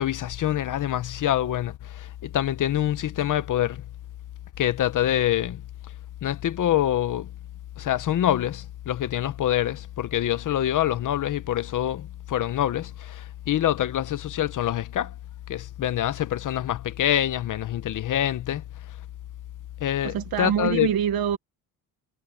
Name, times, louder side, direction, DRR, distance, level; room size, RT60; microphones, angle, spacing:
voice 1, 0.0-3.8 4.6-5.6 6.2-7.3 7.8-15.1 15.5-18.6 19.8-20.9, left 12 dB, 55° left, 0.8 m, -25 dB
voice 2, 20.0-21.4, right 9 dB, 70° right, 1.2 m, -25 dB
wide cardioid pair, 175°, 37 cm